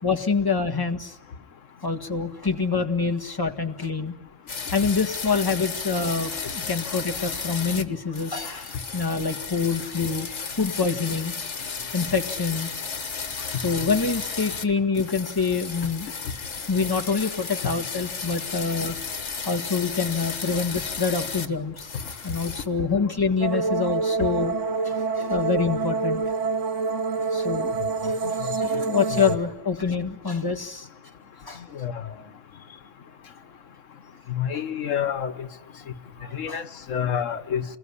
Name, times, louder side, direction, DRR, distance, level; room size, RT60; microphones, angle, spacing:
voice 1, 0.0-1.2 1.8-4.1 4.7-10.3 10.6-11.3 11.9-12.7 13.4-16.1 16.7-19.0 19.5-21.9 22.2-24.5 24.8-26.2 27.3-27.7 28.0-30.9 31.4-31.6 36.2-36.6, left 5 dB, 15° left, 4 dB, 1.7 m, -26 dB
sound 1, 4.5-7.8 8.1-14.7 14.9-21.5 21.8-22.7, left 5 dB, 70° left, 1.8 m, -34 dB
sound 2, 23.4-29.4, right 4 dB, 75° right, 1.7 m, -26 dB
voice 2, 31.7-32.1 34.3-35.3 36.3-37.6, left 9 dB, 90° left, 12 dB, 1.5 m, -28 dB
29.0 x 21.0 x 9.8 m, 1.0 s
omnidirectional pair, 1.3 m